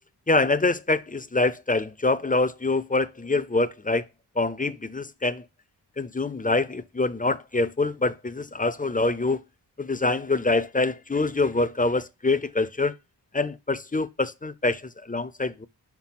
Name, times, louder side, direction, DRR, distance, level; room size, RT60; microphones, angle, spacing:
voice 1, 0.3-4.0 4.4-5.4 6.0-9.4 9.8-12.9 13.3-15.7, left 3 dB, 20° left, 0.6 m, -25 dB
6.0 x 5.7 x 5.7 m
wide cardioid pair, 65°, 41 cm